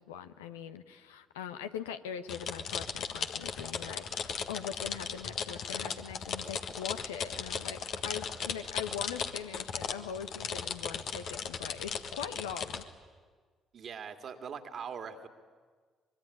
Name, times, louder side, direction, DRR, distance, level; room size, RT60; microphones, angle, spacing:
voice 1, 0.0-12.9, left 8 dB, 90° left, 9 dB, 1.0 m, -42 dB
sound 1, 2.3-12.8, left 6 dB, 65° left, 1.6 m, -37 dB
voice 2, 13.7-15.3, right 6 dB, 55° right, 7 dB, 2.3 m, -41 dB
24.5 x 21.5 x 10.0 m, 1.5 s
hypercardioid pair, 50°, 0 cm